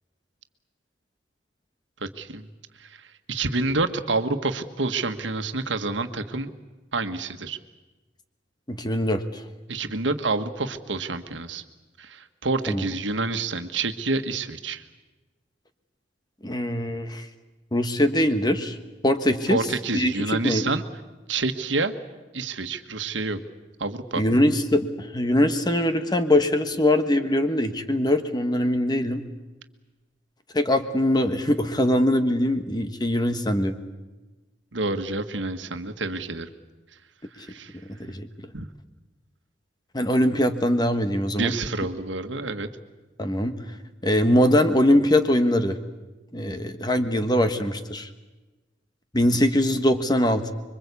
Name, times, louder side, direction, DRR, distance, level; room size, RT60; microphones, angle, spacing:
voice 1, 2.0-2.5 2.8-6.5 6.9-7.6 9.7-11.6 12.0-14.8 19.5-20.8 21.3-21.9 22.3-23.4 23.8-24.2 34.7-36.5 37.4-37.7 38.5-38.6 41.4-42.7, right 3 dB, 85° right, 8 dB, 1.5 m, -28 dB
voice 2, 8.7-9.4 12.7-12.9 16.4-17.2 17.7-18.8 19.0-19.6 19.9-20.6 24.2-29.2 30.5-33.8 37.9-38.3 39.9-41.5 43.2-43.5 44.0-45.8 46.3-48.1 49.1-50.5, left 1 dB, 25° left, 9 dB, 1.4 m, -22 dB
26.0 x 23.5 x 8.4 m, 1.2 s
head